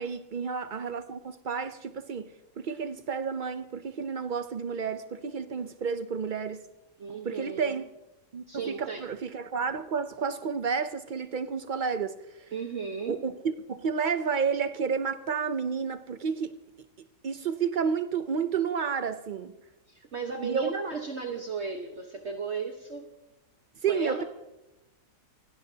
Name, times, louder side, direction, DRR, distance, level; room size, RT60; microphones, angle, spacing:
voice 1, 0.0-6.6 7.2-7.9 8.3-12.5 13.1-19.6 20.4-20.8 23.8-24.2, right 6 dB, 80° right, 0.4 m, -31 dB
voice 2, 7.0-7.7 8.5-9.0 12.5-13.2 19.9-23.1 23.9-24.2, right 5 dB, 45° right, 1.4 m, -35 dB
29.5 x 17.0 x 2.8 m
omnidirectional pair, 1.7 m